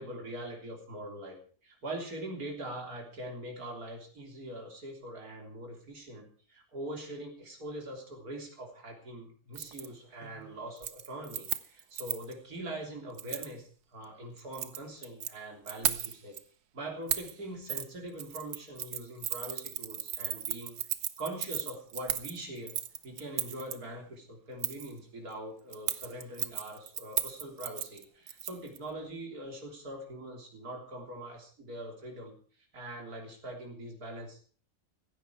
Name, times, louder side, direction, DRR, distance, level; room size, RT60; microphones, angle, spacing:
voice 1, 0.0-16.4 16.7-20.8 21.2-22.7 23.0-32.3 32.7-34.5, right 1 dB, 70° right, 1 dB, 4.0 m, -42 dB
Keys jangling, 9.5-9.9 10.2-10.5 10.8-12.3 13.2-13.5 14.4-15.3 15.7-16.4 17.1-17.3 17.7-17.9 18.2-23.7 24.6-24.9 25.7-28.8 29.1-29.2, right 10 dB, 85° right, 1.5 m, -35 dB
16.0 x 15.0 x 4.7 m, 0.43 s
omnidirectional pair, 1.6 m